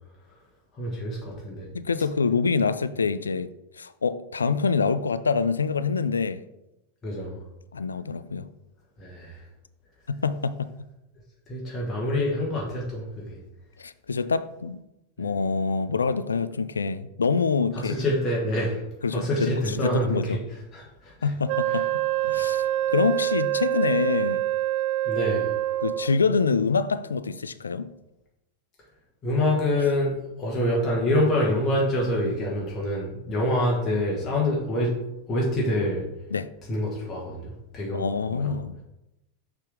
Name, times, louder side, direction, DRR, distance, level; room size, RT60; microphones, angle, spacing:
voice 1, 0.8-1.7 7.0-7.4 9.0-9.4 11.5-13.4 15.2-15.3 17.7-18.8 19.1-20.4 20.7-21.3 21.7-21.8 22.3-22.5 25.0-25.5 29.2-35.0 35.3-36.1 36.7-38.1 38.3-38.5, left 1 dB, 25° left, 1.6 m, -26 dB
voice 2, 1.7-3.5 3.7-6.4 7.7-8.5 10.1-10.7 13.8-14.8 15.2-18.0 19.0-20.4 21.2-22.6 22.9-24.4 25.8-27.9 36.3-36.5 37.9-38.8, left 5 dB, 75° left, 0.3 m, -26 dB
Wind instrument woodwind instrument, 21.5-26.2, right 14 dB, 45° right, 0.4 m, -26 dB
6.5 x 3.7 x 4.8 m
figure-of-eight pair, 90°, 0 cm